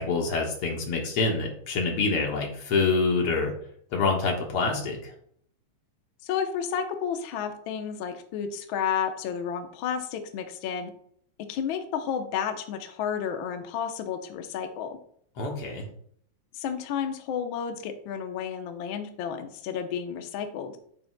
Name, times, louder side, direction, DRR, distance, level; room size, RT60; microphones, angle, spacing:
voice 1, 0.0-3.5 3.9-5.1 15.4-15.9, left 4 dB, 55° left, 1 dB, 2.1 m, -26 dB
voice 2, 6.2-10.9 11.5-14.9 16.5-20.8, left 7 dB, 90° left, 6 dB, 1.1 m, -31 dB
9.0 x 7.3 x 2.2 m, 0.62 s
omnidirectional pair, 3.4 m